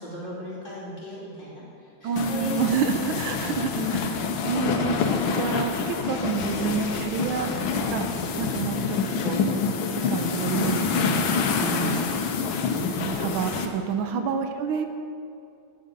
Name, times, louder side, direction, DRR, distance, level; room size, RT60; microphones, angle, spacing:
voice 1, 0.0-4.0 14.1-14.5, left 2 dB, 25° left, -7 dB, 3.0 m, -36 dB
voice 2, 2.0-3.7 4.5-8.1 8.4-9.4 9.9-11.3 11.6-12.1 12.8-14.9, right 6 dB, 85° right, 6 dB, 1.5 m, -29 dB
sound 1, 2.2-13.7, left 5 dB, 75° left, 1.6 m, -27 dB
11.0 x 8.9 x 5.3 m, 2.5 s
omnidirectional pair, 2.3 m